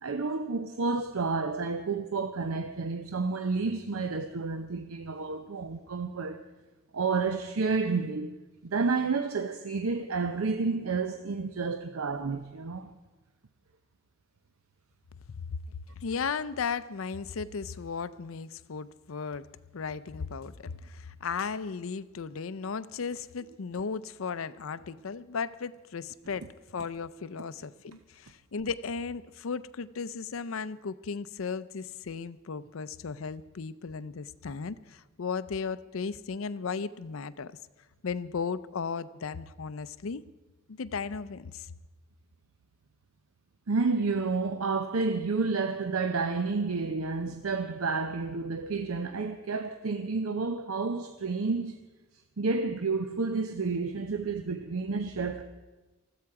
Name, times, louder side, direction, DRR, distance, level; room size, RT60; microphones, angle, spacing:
voice 1, 0.0-6.4 6.9-8.3 8.6-12.9 43.7-51.8 52.4-55.4, right 4 dB, 85° right, 0.7 m, -30 dB
voice 2, 15.3-19.5 19.7-26.5 26.7-37.5 38.0-40.2 40.7-41.7, left 5 dB, 75° left, 0.5 m, -36 dB
20.0 x 14.0 x 4.8 m
head